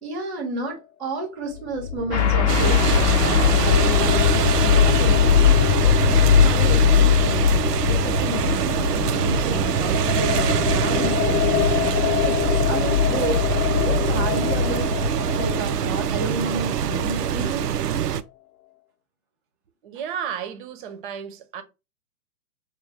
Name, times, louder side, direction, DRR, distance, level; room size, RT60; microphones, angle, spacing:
voice 1, 0.0-7.5 7.8-14.9 15.4-17.7, right 2 dB, ahead, 0.4 m, -31 dB
sound 1, 1.6-16.4, left 9 dB, 70° left, 0.6 m, -21 dB
sound 2, 2.1-7.9, left 9 dB, 25° left, 0.7 m, -25 dB
sound 3, 2.5-18.2, right 9 dB, 90° right, 0.5 m, -24 dB
voice 2, 19.8-21.6, right 8 dB, 35° right, 0.7 m, -33 dB
6.1 x 2.2 x 3.3 m
hypercardioid pair, 125°, 46 cm